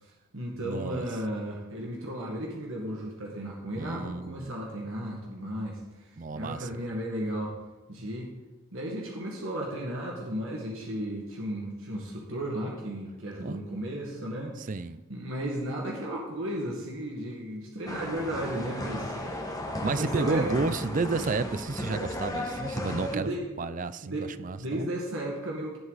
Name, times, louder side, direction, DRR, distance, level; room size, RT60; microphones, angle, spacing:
voice 1, 0.0-5.8 6.3-7.6 7.9-8.3 8.7-14.5 15.1-19.4 19.8-20.5 22.8-23.4 24.0-25.8, right 1 dB, 65° right, -2 dB, 1.9 m, -34 dB
voice 2, 0.6-1.1 3.7-4.5 6.2-6.7 13.4-13.6 14.6-15.0 19.8-23.3 23.6-24.9, right 3 dB, 40° right, 14 dB, 0.5 m, -31 dB
sound 1, 17.9-23.2, left 1 dB, 15° left, 1.5 m, -35 dB
17.0 x 8.0 x 4.1 m, 1.2 s
head